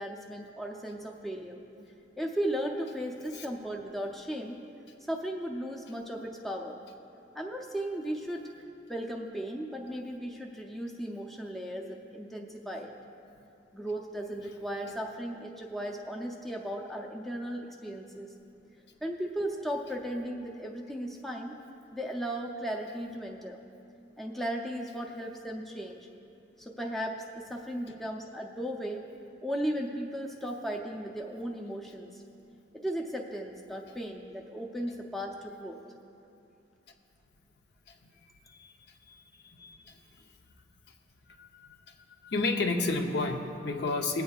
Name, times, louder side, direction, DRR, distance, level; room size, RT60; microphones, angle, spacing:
voice 1, 0.0-1.6 2.2-4.6 5.1-6.8 7.3-8.5 8.9-12.9 13.7-18.3 19.0-21.6 21.9-23.6 24.2-26.1 26.6-29.1 29.4-32.2 32.7-35.8, right 1 dB, ahead, 0 dB, 0.5 m, -36 dB
voice 2, 39.4-40.0 41.4-41.5 42.2-44.2, left 3 dB, 60° left, 3 dB, 0.7 m, -31 dB
20.5 x 8.3 x 2.4 m, 2.7 s
head